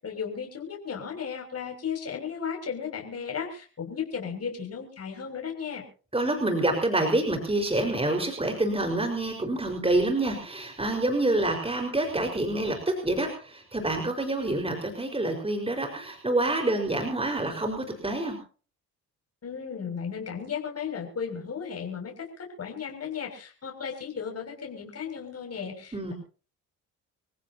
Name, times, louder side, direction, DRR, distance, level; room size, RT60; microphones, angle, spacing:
voice 1, 0.0-5.8 19.4-26.1, left 7 dB, 45° left, 2 dB, 6.8 m, -35 dB
voice 2, 6.1-18.4 25.9-26.1, right 2 dB, 15° right, 3 dB, 5.0 m, -27 dB
26.5 x 16.0 x 2.9 m, 0.39 s
supercardioid pair, 75°, 34 cm